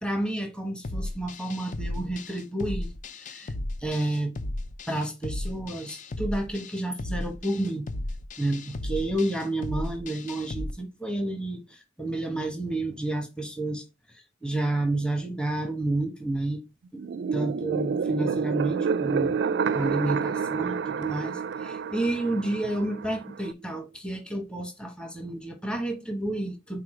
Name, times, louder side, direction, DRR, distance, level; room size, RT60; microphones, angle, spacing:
voice 1, 0.0-2.9 3.2-3.5 3.8-4.3 4.9-7.9 8.4-13.8 14.4-16.6 16.9-17.0 17.3-19.4 19.7-26.8, right 1 dB, 5° left, 1.0 m, -30 dB
sound 1, 0.8-10.7, left 1 dB, 40° left, 0.4 m, -35 dB
sound 2, 17.0-23.5, right 6 dB, 60° right, 0.3 m, -29 dB
4.8 x 4.1 x 4.8 m
head